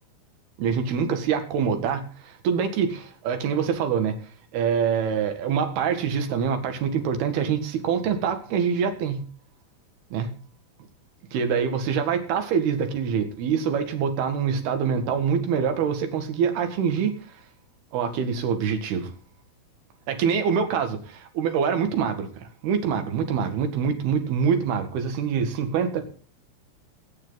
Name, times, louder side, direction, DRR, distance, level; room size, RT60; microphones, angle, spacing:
voice 1, 0.6-4.2 4.5-9.3 10.1-10.3 11.3-17.4 17.9-19.1 20.1-26.1, right 7 dB, 80° right, 7 dB, 3.8 m, -25 dB
18.0 x 9.4 x 4.0 m, 0.41 s
omnidirectional pair, 4.5 m